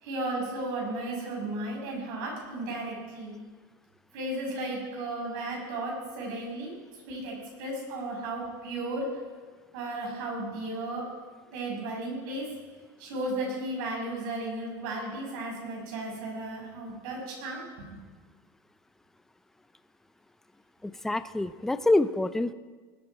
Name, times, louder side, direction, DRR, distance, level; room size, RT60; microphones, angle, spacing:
voice 1, 0.0-3.4 4.1-6.7 7.1-9.1 9.7-11.1 11.5-12.5 13.0-17.6 17.9-18.0, right 2 dB, 65° right, -1 dB, 6.4 m, -34 dB
voice 2, 20.8-22.5, left 2 dB, 5° left, 12 dB, 0.3 m, -26 dB
20.0 x 13.0 x 4.9 m, 1.4 s
cardioid pair, 175°, 11 cm